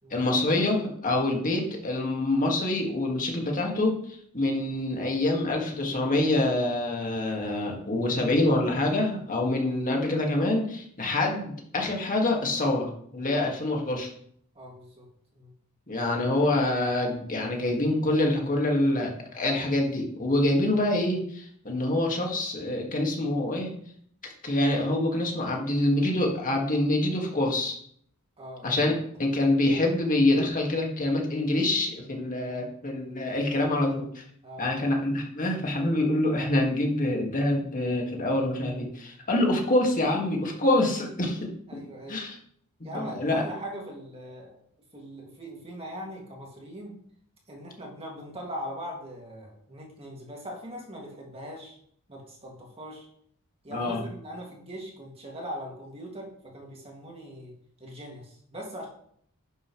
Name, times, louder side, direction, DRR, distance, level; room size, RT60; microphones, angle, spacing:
voice 1, 0.1-14.1 15.9-23.7 24.2-27.8 28.6-28.9 29.2-34.2 34.6-41.5 42.1-42.4 42.9-43.3 53.7-54.0, left 1 dB, 40° left, 0 dB, 2.0 m, -26 dB
voice 2, 14.6-15.1 15.3-15.5 28.4-28.8 32.5-32.7 34.4-34.7 41.7-42.2 42.8-44.6 44.9-47.0 47.5-51.8 52.1-53.1 53.6-57.5 57.8-58.9, equal, 25° right, -1 dB, 2.3 m, -40 dB
11.5 x 6.9 x 3.2 m, 0.65 s
head